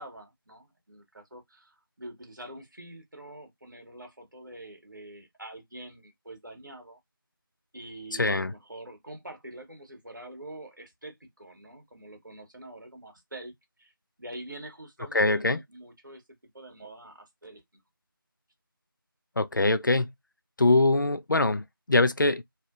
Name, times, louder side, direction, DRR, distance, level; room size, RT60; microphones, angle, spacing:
voice 1, 0.0-7.0 7.7-13.9 14.2-16.2 16.5-17.8, right 1 dB, 55° right, 1.2 m, -45 dB
voice 2, 8.2-8.5 15.1-15.6 19.4-20.1 20.6-22.4, left 2 dB, 60° left, 0.4 m, -23 dB
2.7 x 2.4 x 2.4 m
figure-of-eight pair, 170°, 12 cm